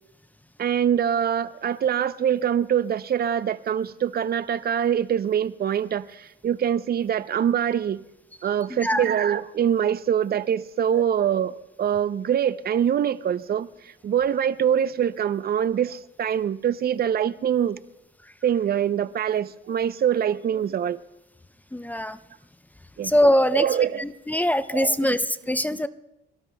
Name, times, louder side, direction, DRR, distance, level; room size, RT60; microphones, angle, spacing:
voice 1, 0.6-8.0 8.4-17.8 18.4-21.0 23.0-23.1 23.5-24.0 24.7-25.2, right 9 dB, 50° right, 0.6 m, -24 dB
voice 2, 21.7-22.2 23.0-23.6 24.0-25.9, left 1 dB, 10° left, 0.5 m, -22 dB
27.5 x 18.0 x 2.2 m
cardioid pair, 90°, 20 cm